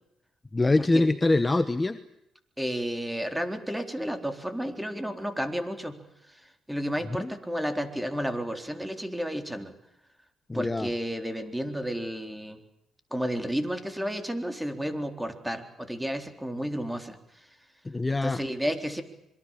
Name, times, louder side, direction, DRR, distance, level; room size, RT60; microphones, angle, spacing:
voice 1, 0.5-2.0 7.2-7.3 10.5-10.9 17.8-18.4, left 2 dB, 20° left, 11 dB, 1.2 m, -24 dB
voice 2, 2.6-6.0 6.3-6.4 6.7-9.7 10.5-12.6 13.1-17.5 18.2-19.0, equal, 5° right, 7 dB, 3.9 m, -32 dB
26.5 x 23.5 x 7.5 m, 0.87 s
cardioid pair, 90°, 0 cm